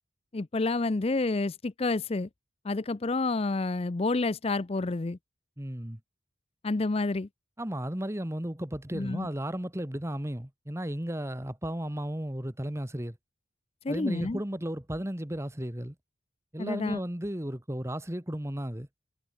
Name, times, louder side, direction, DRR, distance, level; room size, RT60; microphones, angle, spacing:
voice 1, 0.3-2.3 2.6-5.2 6.6-7.3 8.9-9.3 13.8-14.4 16.6-17.0, left 3 dB, 30° left, 0.5 m, -29 dB
voice 2, 5.6-6.0 7.6-13.2 13.9-15.9 16.5-18.9, right 1 dB, 15° right, 1.3 m, -34 dB
head